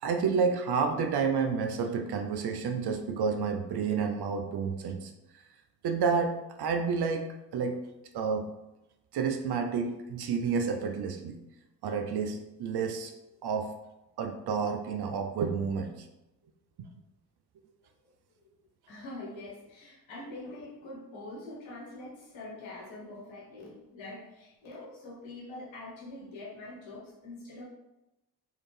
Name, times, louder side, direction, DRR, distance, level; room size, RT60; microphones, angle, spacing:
voice 1, 0.0-5.1 5.8-7.3 7.5-7.8 8.1-8.5 9.1-11.4 11.8-13.1 13.4-13.7 14.2-16.1, right 5 dB, 55° right, 5 dB, 0.6 m, -30 dB
voice 2, 18.9-27.6, left 2 dB, 65° left, -4 dB, 1.4 m, -44 dB
3.4 x 2.7 x 3.2 m, 0.94 s
hypercardioid pair, 50°, 48 cm